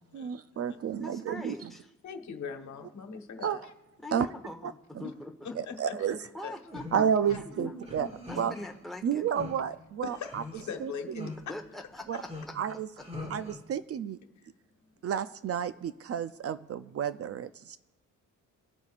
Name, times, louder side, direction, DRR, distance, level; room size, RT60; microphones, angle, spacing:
voice 1, 0.1-1.5 3.4-3.6 4.1-4.3 4.6-4.7 5.6-6.2 6.9-8.1 8.4-8.5 9.0-10.4 10.8-10.9 11.2-11.3 12.1-12.2 12.6-12.9 13.3-14.2 15.0-17.8, right 8 dB, 50° right, 13 dB, 0.4 m, -31 dB
voice 2, 1.0-1.9 4.0-5.3 6.3-6.9 7.4-9.3 11.5-12.1, left 1 dB, ahead, 3 dB, 1.1 m, -42 dB
voice 3, 2.0-3.7 5.6-6.5 7.3-7.4 8.0-8.1 10.0-11.3, left 6 dB, 65° left, 5 dB, 1.3 m, -41 dB
sound 1, 6.6-7.4 7.8-8.7 9.3-9.6 10.1-10.8 11.2-11.4 12.1-13.6, left 2 dB, 20° right, 1.8 m, -42 dB
23.5 x 8.2 x 2.5 m, 1.0 s
cardioid pair, 125°, 31 cm